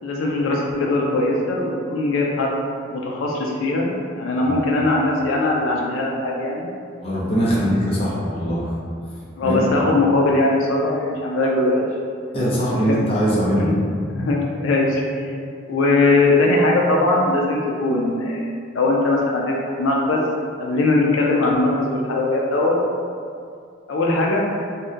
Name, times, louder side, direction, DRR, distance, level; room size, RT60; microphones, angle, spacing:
voice 1, 0.0-2.6 2.9-6.7 7.4-7.6 9.4-11.9 12.7-13.0 13.6-13.8 14.1-15.3 15.7-18.5 18.7-20.2 20.6-22.8 23.9-24.5, left 2 dB, 80° left, -2 dB, 0.4 m, -20 dB
voice 2, 7.0-8.7 9.4-9.7 12.3-13.7, equal, 30° left, -7 dB, 0.6 m, -21 dB
2.7 x 2.1 x 3.6 m, 2.3 s
head